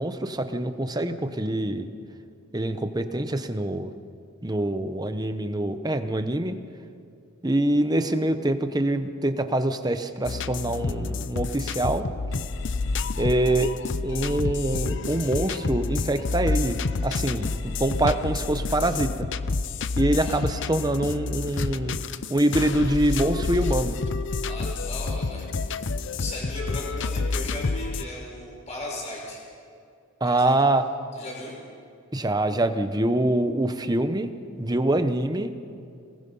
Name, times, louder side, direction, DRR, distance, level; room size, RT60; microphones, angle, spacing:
voice 1, 0.0-1.9 2.5-3.9 4.4-6.6 7.4-12.0 13.2-13.7 14.0-16.8 17.0-19.3 20.0-22.0 22.3-24.0 30.2-30.8 32.1-34.3 34.6-35.5, right 1 dB, 20° right, 9 dB, 0.9 m, -25 dB
sound 1, 10.2-28.0, left 3 dB, 55° left, 0.6 m, -29 dB
voice 2, 24.4-25.9 26.2-29.4 30.2-30.5 31.1-31.5, left 1 dB, 30° left, -2 dB, 5.8 m, -37 dB
28.5 x 19.5 x 5.5 m, 2.4 s
head